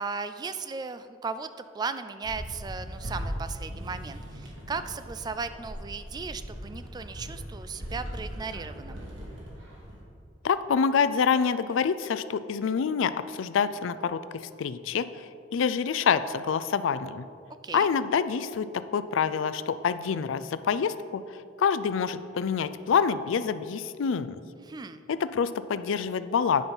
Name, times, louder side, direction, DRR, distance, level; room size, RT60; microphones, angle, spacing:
voice 1, 0.0-1.5 1.7-9.1 17.6-17.9 24.7-25.0, right 4 dB, 20° right, 12 dB, 0.3 m, -36 dB
sound 1, 2.2-10.0, equal, 80° right, 2.0 m, -39 dB
voice 2, 10.4-17.2 17.7-24.4 25.1-26.6, left 6 dB, 90° left, 14 dB, 0.4 m, -27 dB
9.3 x 5.4 x 5.6 m, 2.4 s
head